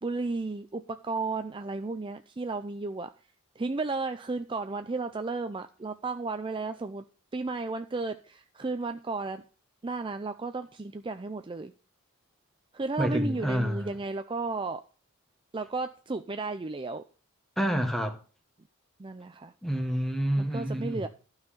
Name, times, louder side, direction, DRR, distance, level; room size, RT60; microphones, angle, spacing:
voice 1, 0.0-3.1 3.6-7.0 7.3-9.4 9.8-11.7 12.7-14.8 15.5-17.0 19.0-19.5 20.4-21.1, right 3 dB, 25° right, 0.5 m, -33 dB
voice 2, 13.0-13.9 17.6-18.2 19.6-21.1, equal, ahead, 1.4 m, -28 dB
12.0 x 5.7 x 6.5 m
head